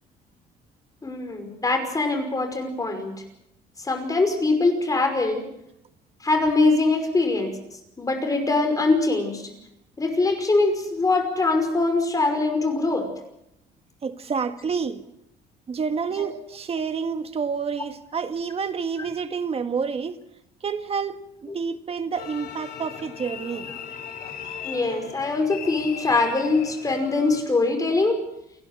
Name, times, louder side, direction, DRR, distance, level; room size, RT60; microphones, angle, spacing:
voice 1, 1.0-3.1 3.8-5.4 6.2-7.6 8.0-9.5 10.0-13.1 16.2-16.3 24.6-28.2, left 3 dB, 20° left, 5.5 m, -23 dB
voice 2, 14.0-15.0 15.7-20.2 20.6-23.7, right 5 dB, 35° right, 1.8 m, -29 dB
sound 1, 22.1-27.4, left 7 dB, 65° left, 4.8 m, -38 dB
29.5 x 11.5 x 8.4 m
cardioid pair, 110°, 17 cm